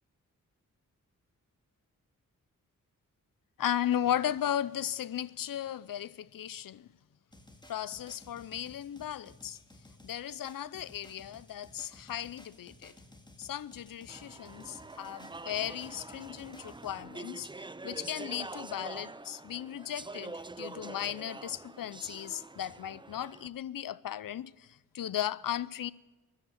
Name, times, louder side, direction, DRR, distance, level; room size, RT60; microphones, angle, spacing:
voice 1, 3.6-6.9 7.7-9.6 10.0-12.9 13.4-25.9, left 10 dB, 80° left, 0.6 m, -36 dB
sound 1, 7.3-17.0, left 1 dB, 15° left, 2.0 m, -56 dB
Speech / Chatter, 14.1-23.5, right 3 dB, 15° right, 0.5 m, -45 dB
14.0 x 11.5 x 8.9 m
cardioid pair, 65°, 33 cm